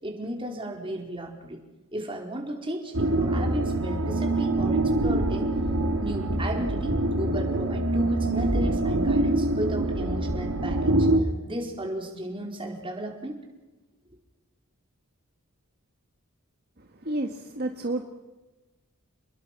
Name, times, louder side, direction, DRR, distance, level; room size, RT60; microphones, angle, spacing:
voice 1, 0.0-1.6 1.9-5.5 6.0-13.4, right 1 dB, 25° right, 1 dB, 4.3 m, -34 dB
sound 1, 2.9-11.2, right 2 dB, 85° right, 2.7 m, -25 dB
voice 2, 16.8-18.0, right 2 dB, 45° right, 4 dB, 1.7 m, -31 dB
30.0 x 21.0 x 6.0 m, 1.1 s
head